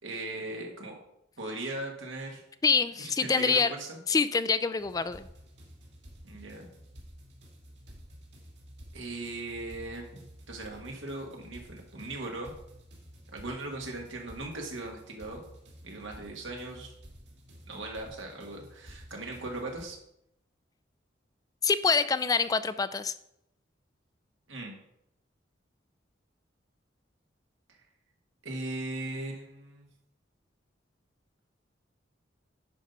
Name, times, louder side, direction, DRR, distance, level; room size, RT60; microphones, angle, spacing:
voice 1, 0.0-1.0 1.4-2.4 3.0-4.0 6.2-6.7 8.9-10.2 10.5-12.5 13.3-15.4 15.8-16.9 17.6-20.0 24.5-24.8 27.7-27.8 28.4-29.9, right 2 dB, 85° right, 1 dB, 1.8 m, -38 dB
voice 2, 2.6-3.7 4.1-5.3 21.6-23.1, left 5 dB, 20° left, 13 dB, 0.3 m, -26 dB
sound 1, 4.8-19.8, equal, 65° right, 2.4 m, -51 dB
10.0 x 4.1 x 5.3 m, 0.79 s
head